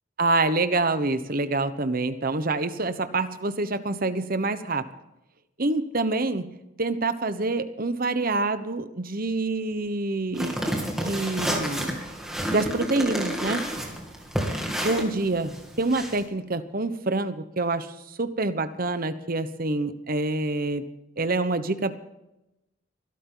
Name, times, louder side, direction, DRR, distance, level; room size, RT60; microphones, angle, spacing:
voice 1, 0.2-4.9 5.6-10.6 11.0-12.0 12.5-13.7 14.8-20.8 21.2-21.9, right 2 dB, 45° right, 11 dB, 1.1 m, -26 dB
sound 1, 10.3-16.2, equal, 5° right, 2.7 m, -30 dB
23.0 x 12.5 x 3.9 m, 0.92 s
head